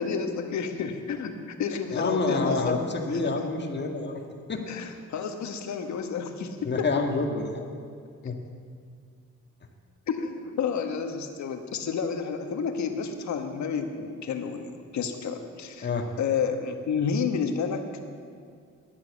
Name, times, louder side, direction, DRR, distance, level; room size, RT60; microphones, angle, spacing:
voice 1, 0.0-2.8 3.2-3.3 4.7-7.0 10.1-17.8, left 6 dB, 65° left, 6 dB, 1.5 m, -30 dB
voice 2, 1.9-4.2 4.5-4.6 6.7-7.7 8.2-8.3 15.8-16.0, left 3 dB, 35° left, 3 dB, 1.7 m, -28 dB
11.0 x 10.5 x 8.2 m, 2.2 s
cardioid pair, 90°, 30 cm